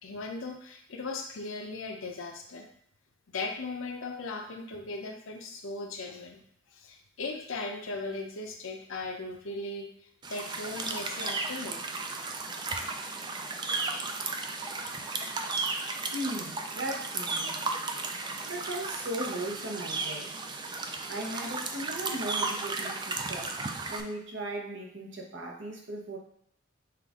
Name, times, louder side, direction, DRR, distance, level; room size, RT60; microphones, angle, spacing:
voice 1, 0.0-2.7 3.3-6.4 6.7-9.9 10.3-11.8, left 3 dB, 80° left, 2 dB, 0.6 m, -38 dB
sound 1, 10.2-24.0, right 3 dB, 20° right, 0.3 m, -34 dB
voice 2, 16.1-17.6 18.5-20.4 21.1-23.6 23.9-26.2, right 1 dB, 60° right, -1 dB, 1.0 m, -37 dB
5.8 x 2.5 x 3.6 m, 0.71 s
head